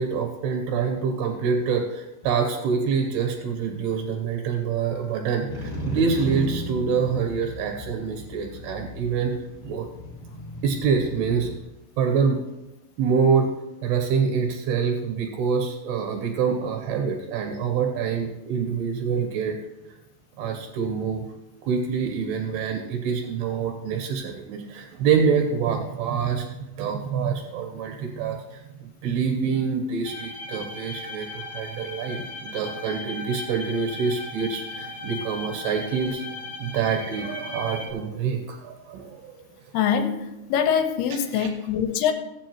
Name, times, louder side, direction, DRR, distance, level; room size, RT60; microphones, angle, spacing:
voice 1, 0.0-9.3 9.6-9.9 10.6-11.5 12.0-12.4 13.0-13.5 13.8-19.6 20.4-21.3 21.6-36.2 36.6-39.3 41.3-41.5, right 6 dB, 70° right, 4 dB, 2.8 m, -26 dB
Motorcycle, 5.5-11.6, equal, 30° left, 2.0 m, -35 dB
sound 1, 30.0-37.9, left 2 dB, 30° right, 0.5 m, -37 dB
voice 2, 39.7-40.2 40.5-42.1, left 8 dB, 80° left, 7 dB, 2.6 m, -23 dB
17.0 x 8.4 x 3.0 m, 0.98 s
omnidirectional pair, 5.0 m